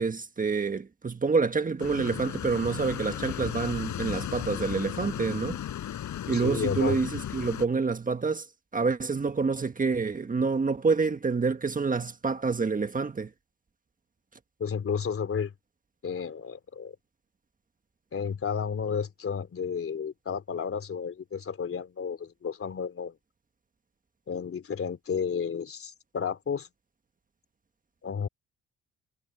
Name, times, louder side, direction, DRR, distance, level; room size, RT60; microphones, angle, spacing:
voice 1, 0.0-5.6 6.3-8.4 8.7-13.3, right 4 dB, 25° right, 1.5 m, -27 dB
sound 1, 1.8-7.7, left 11 dB, 70° left, 7.8 m, -35 dB
voice 2, 6.3-7.2 14.6-15.5 16.0-16.9 18.1-23.1 24.3-26.7 28.0-28.3, left 6 dB, 45° left, 3.3 m, -32 dB
cardioid pair, 90°, 30 cm